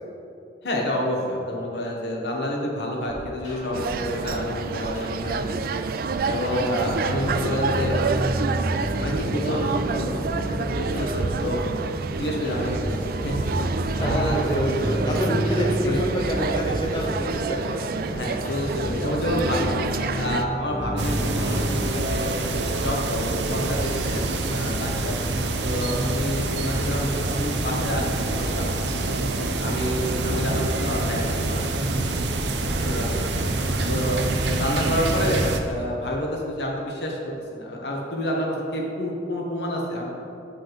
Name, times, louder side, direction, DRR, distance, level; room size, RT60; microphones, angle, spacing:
voice 1, 0.6-5.7 6.2-8.0 9.0-10.1 10.5-11.6 12.1-13.7 14.0-15.1 15.8-16.0 18.1-19.8 20.2-22.3 22.8-25.2 25.6-29.1 29.6-31.6 31.9-32.0 32.8-33.3 33.9-40.0, left 1 dB, 75° left, -1 dB, 1.4 m, -28 dB
sound 1, 3.1-4.4 4.8-5.5 6.1-21.9, equal, 40° left, 2.0 m, -31 dB
sound 2, 3.7-20.4, right 4 dB, 55° right, 0.3 m, -28 dB
voice 2, 14.0-17.9, equal, 25° left, -2 dB, 0.7 m, -27 dB
sound 3, 21.0-35.6, right 2 dB, 80° right, 0.7 m, -26 dB
7.8 x 5.3 x 5.2 m, 2.8 s
head